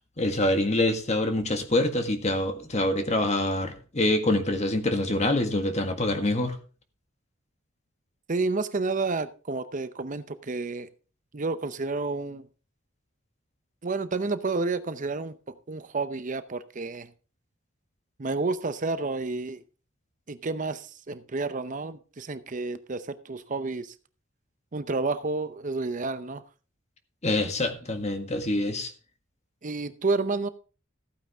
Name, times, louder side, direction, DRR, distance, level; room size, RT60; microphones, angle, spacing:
voice 1, 0.2-6.6 27.2-28.9, left 1 dB, 35° left, 1.7 m, -25 dB
voice 2, 8.3-10.9 11.3-12.5 13.8-15.3 15.7-17.1 18.2-19.6 20.3-23.9 24.7-26.4 29.6-30.5, right 3 dB, 40° right, 0.7 m, -30 dB
15.0 x 9.1 x 3.5 m
head